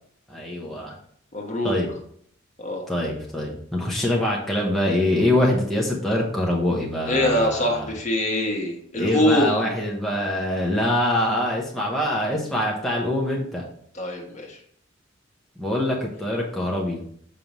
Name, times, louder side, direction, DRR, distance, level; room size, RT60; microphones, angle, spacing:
voice 1, 0.3-1.0 1.6-1.9 2.9-7.9 8.9-13.6 15.6-17.0, left 1 dB, ahead, -4 dB, 0.9 m, -24 dB
voice 2, 1.3-1.7 2.6-2.8 7.1-9.7 13.9-14.6, left 1 dB, 35° left, 1 dB, 1.2 m, -23 dB
6.8 x 5.3 x 3.0 m, 0.63 s
head